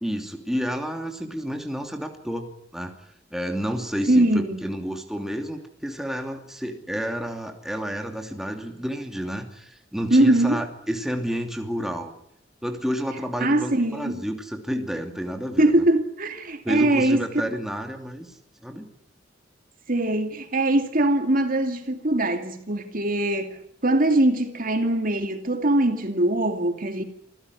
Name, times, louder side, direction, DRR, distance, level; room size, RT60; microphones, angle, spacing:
voice 1, 0.0-2.5 2.7-2.9 3.3-12.1 12.6-15.8 16.6-18.3 18.6-18.9, equal, ahead, 2.8 m, -30 dB
voice 2, 4.1-4.6 10.1-10.6 13.4-14.2 15.6-17.2 19.9-27.0, right 1 dB, 50° right, 2.5 m, -22 dB
27.0 x 16.0 x 9.9 m
head